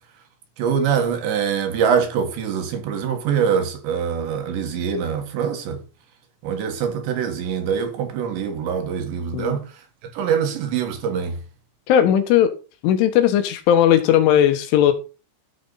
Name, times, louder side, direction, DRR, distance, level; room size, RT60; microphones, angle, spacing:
voice 1, 0.6-5.8 6.4-11.4, right 7 dB, 70° right, 3.5 m, -24 dB
voice 2, 11.9-12.5 12.8-14.9, left 10 dB, 80° left, 3.6 m, -17 dB
13.5 x 7.1 x 4.1 m
omnidirectional pair, 5.6 m